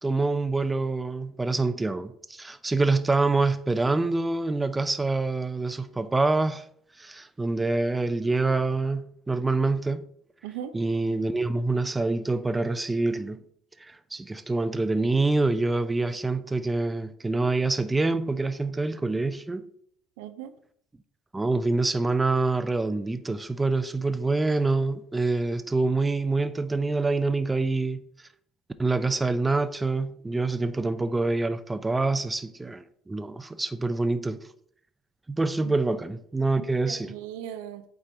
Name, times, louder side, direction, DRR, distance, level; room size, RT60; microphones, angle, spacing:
voice 1, 0.0-6.6 7.0-10.1 10.7-13.4 13.8-19.7 21.3-28.0 28.8-34.5 35.3-37.2, right 3 dB, 15° right, 0.5 m, -26 dB
voice 2, 20.2-20.5 35.6-35.7 36.5-37.8, right 10 dB, 70° right, 0.5 m, -38 dB
8.4 x 3.4 x 3.8 m
hypercardioid pair, 60°, 0 cm